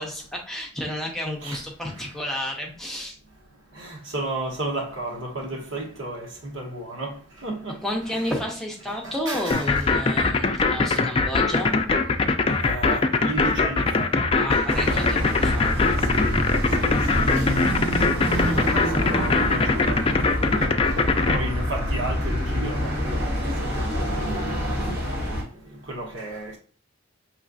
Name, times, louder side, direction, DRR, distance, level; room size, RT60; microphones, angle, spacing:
voice 1, 0.0-3.2 7.8-11.8 14.3-16.0 18.2-18.4, left 1 dB, ahead, 0.7 m, -31 dB
voice 2, 3.8-7.1 7.4-7.7 9.0-9.7 12.6-14.1 14.7-15.1 16.1-16.4 16.8-17.4 18.3-20.1 20.4-20.7 21.3-24.5 25.9-26.6, right 1 dB, 80° right, 1.1 m, -33 dB
sound 1, 9.5-21.4, left 4 dB, 30° left, 0.4 m, -21 dB
sound 2, 14.7-25.4, equal, 55° right, 1.6 m, -26 dB
5.6 x 3.1 x 2.6 m
head